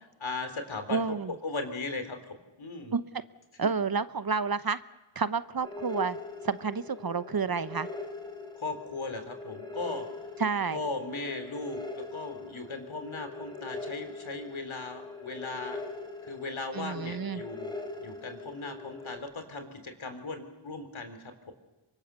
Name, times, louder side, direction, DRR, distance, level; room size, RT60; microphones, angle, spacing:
voice 1, 0.2-1.2 1.4-2.9 8.6-10.0 10.7-15.8 16.2-21.5, left 3 dB, 70° left, 7 dB, 3.7 m, -38 dB
voice 2, 0.9-1.3 2.9-3.0 3.6-4.8 5.2-6.2 6.4-7.9 10.4-10.8 16.7-17.4, right 5 dB, 45° right, 14 dB, 1.0 m, -30 dB
sound 1, 5.6-19.2, left 3 dB, 10° left, 4.2 m, -42 dB
24.5 x 23.0 x 6.9 m, 1.1 s
cardioid pair, 50°, 49 cm